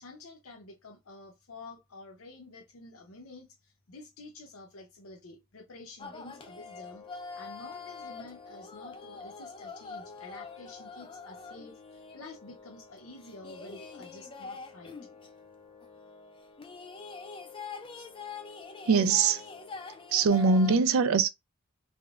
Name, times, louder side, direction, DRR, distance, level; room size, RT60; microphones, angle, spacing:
voice 1, 0.0-7.0 7.3-14.9, left 2 dB, 70° left, 0.7 m, -49 dB
sound 1, 6.0-20.8, left 4 dB, 25° left, 0.4 m, -45 dB
voice 2, 18.9-19.4 20.1-21.3, right 5 dB, 65° right, 0.4 m, -22 dB
3.5 x 2.0 x 2.4 m
head